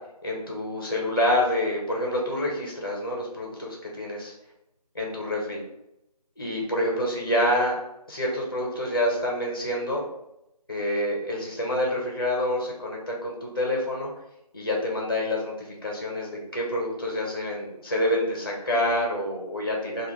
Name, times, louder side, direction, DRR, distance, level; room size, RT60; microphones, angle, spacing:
voice 1, 0.2-4.3 4.9-5.6 6.4-7.8 8.1-10.0 10.7-14.1 14.5-20.1, left 1 dB, 35° left, -2 dB, 0.6 m, -27 dB
2.3 x 2.3 x 3.1 m, 0.85 s
figure-of-eight pair, 160°, 21 cm